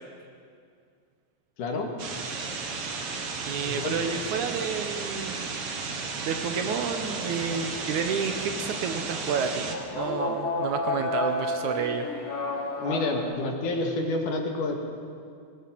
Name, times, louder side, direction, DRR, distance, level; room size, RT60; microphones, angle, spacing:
voice 1, 1.6-1.9 3.7-4.0 12.8-14.7, left 2 dB, 65° left, 2 dB, 3.4 m, -28 dB
sound 1, 2.0-9.7, right 4 dB, 50° right, 2.2 m, -34 dB
voice 2, 3.5-5.5 6.2-12.1, right 6 dB, 70° right, 6 dB, 2.1 m, -30 dB
sound 2, 6.9-13.2, left 2 dB, 45° left, 5.5 m, -33 dB
19.0 x 18.0 x 7.6 m, 2.3 s
omnidirectional pair, 4.0 m